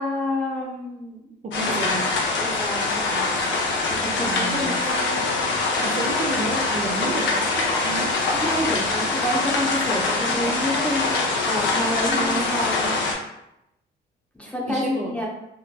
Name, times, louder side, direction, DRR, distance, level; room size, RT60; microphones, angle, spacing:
voice 1, 0.0-1.3 2.4-3.5 4.0-4.7 8.3-12.9 14.3-15.3, left 1 dB, 5° left, -3 dB, 0.6 m, -28 dB
voice 2, 1.4-2.1 4.2-4.8 5.8-8.1 12.1-12.5 14.7-15.1, right 2 dB, 40° right, 0 dB, 0.4 m, -31 dB
sound 1, 1.5-13.1, left 3 dB, 70° left, 0.5 m, -24 dB
Bowed string instrument, 4.1-9.2, right 1 dB, 55° left, 1.2 m, -40 dB
2.8 x 2.1 x 2.2 m, 0.86 s
cardioid pair, 85°, 19 cm